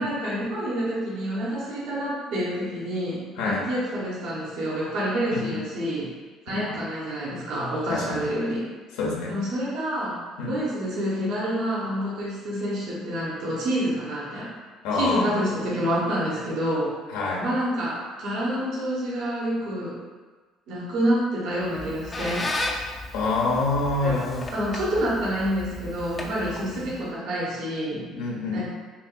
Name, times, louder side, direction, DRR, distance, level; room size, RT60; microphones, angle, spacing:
voice 1, 0.0-6.1 6.4-8.6 9.3-10.2 10.5-14.5 14.9-16.9 17.4-20.0 20.7-22.5 24.0-24.2 24.5-28.0 28.5-28.7, equal, 70° right, -7 dB, 1.3 m, -28 dB
voice 2, 5.3-5.6 6.5-6.8 7.9-8.2 9.0-9.3 10.4-10.6 14.8-15.3 17.1-17.4 23.1-24.5 26.7-26.8 28.1-28.6, left 3 dB, 80° left, -2 dB, 0.8 m, -26 dB
Squeak, 21.6-27.1, left 2 dB, 30° left, 0.5 m, -35 dB
5.6 x 2.5 x 2.3 m, 1.3 s
supercardioid pair, 75°, 0 cm